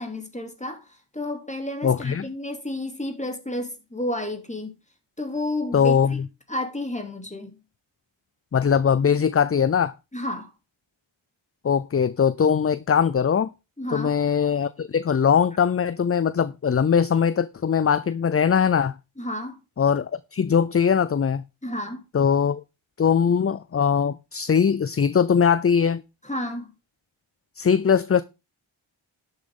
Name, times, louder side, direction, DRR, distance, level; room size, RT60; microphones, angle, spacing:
voice 1, 0.0-4.7 5.2-6.2 6.5-7.6 10.1-10.5 13.8-14.2 19.2-19.6 21.6-22.0 26.2-26.7, left 1 dB, 15° left, 2.9 m, -31 dB
voice 2, 1.8-2.3 5.7-6.2 8.5-9.9 11.6-13.5 13.9-18.9 19.8-21.4 22.1-22.6 23.0-26.0 27.6-28.2, left 7 dB, 30° left, 0.4 m, -21 dB
11.5 x 7.9 x 3.7 m
wide cardioid pair, 85°, 49 cm